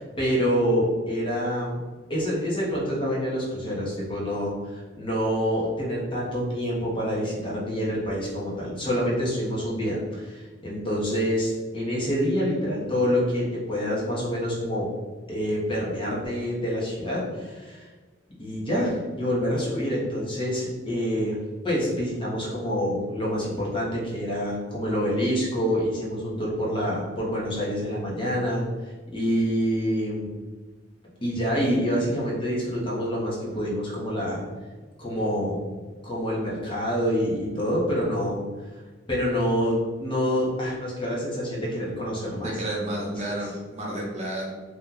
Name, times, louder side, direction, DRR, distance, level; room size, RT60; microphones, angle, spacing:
voice 1, 0.0-1.8 2.1-14.9 15.3-17.9 18.4-30.3 31.2-34.4 35.0-35.6 36.0-38.4 39.1-42.5 42.8-43.4, equal, 30° left, -6 dB, 1.0 m, -27 dB
voice 2, 42.4-44.5, right 1 dB, 35° right, -3 dB, 0.7 m, -31 dB
2.9 x 2.4 x 3.8 m, 1.4 s
head